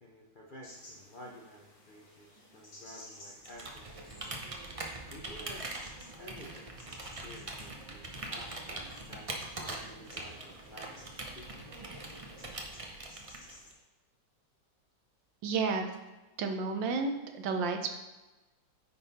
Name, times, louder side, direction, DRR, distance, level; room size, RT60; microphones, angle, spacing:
voice 1, 0.0-4.0 5.1-5.7 6.1-11.5, equal, 55° left, -3 dB, 0.5 m, -52 dB
sound 1, 0.6-13.7, left 1 dB, 85° left, 3.2 m, -57 dB
Computer keyboard, 3.4-13.7, right 2 dB, 55° right, 0.3 m, -42 dB
voice 2, 15.4-15.9 16.4-17.9, right 4 dB, 80° right, 5 dB, 1.5 m, -31 dB
9.6 x 3.9 x 4.1 m, 1.1 s
omnidirectional pair, 2.0 m